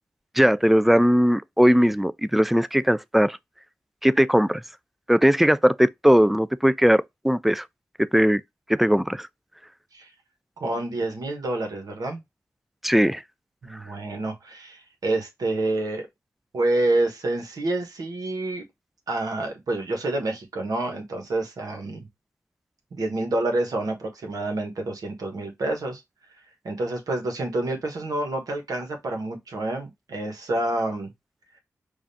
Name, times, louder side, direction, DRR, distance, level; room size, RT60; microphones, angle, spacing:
voice 1, 0.4-3.4 4.0-4.6 5.1-7.6 8.0-8.4 8.7-9.3 12.8-13.2, equal, 5° right, 0.3 m, -19 dB
voice 2, 10.6-12.2 13.6-16.1 16.5-18.6 19.1-22.1 22.9-26.0 26.6-31.1, right 2 dB, 80° right, 1.2 m, -28 dB
4.9 x 2.5 x 2.6 m
cardioid pair, 40°, 6 cm